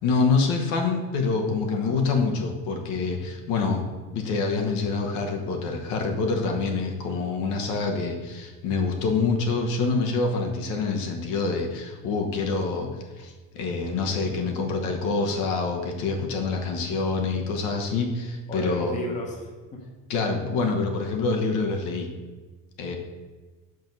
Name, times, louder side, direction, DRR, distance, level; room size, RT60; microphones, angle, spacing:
voice 1, 0.0-3.8 4.1-12.9 13.2-19.0 20.1-22.1 22.8-23.0, left 4 dB, 60° left, 3 dB, 1.2 m, -26 dB
voice 2, 18.5-19.8, left 1 dB, 20° left, -1 dB, 1.0 m, -33 dB
6.1 x 5.2 x 5.3 m, 1.3 s
cardioid pair, 175°, 35 cm